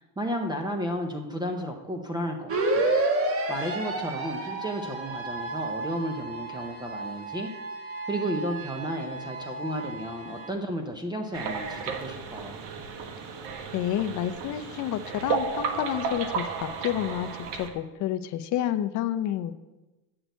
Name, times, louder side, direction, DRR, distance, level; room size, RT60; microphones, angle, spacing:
voice 1, 0.0-2.9 3.5-7.5 8.1-12.6, equal, 10° right, 3 dB, 0.6 m, -33 dB
sound 1, 2.5-10.5, right 2 dB, 30° right, 1.2 m, -31 dB
sound 2, 11.3-17.7, right 5 dB, 70° right, 1.4 m, -33 dB
voice 2, 13.7-19.5, left 11 dB, 45° left, 10 dB, 0.6 m, -29 dB
7.8 x 6.2 x 8.1 m, 1.1 s
cardioid pair, 155°, 42 cm